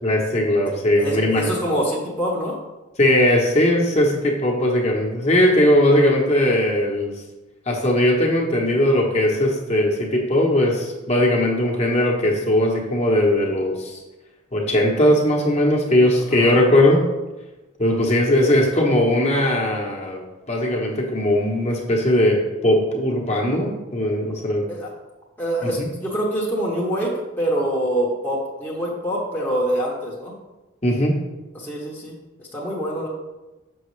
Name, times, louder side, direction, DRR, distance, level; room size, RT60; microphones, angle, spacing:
voice 1, 0.0-1.4 3.0-7.1 7.7-14.0 14.5-17.0 17.8-24.6 25.8-25.9 30.8-31.1, left 1 dB, 30° left, -1 dB, 1.0 m, -19 dB
voice 2, 1.0-2.6 16.3-16.5 18.4-18.5 24.7-24.9 25.4-30.4 31.5-33.1, right 1 dB, 10° left, -5 dB, 0.8 m, -25 dB
6.3 x 6.0 x 3.2 m, 1.1 s
head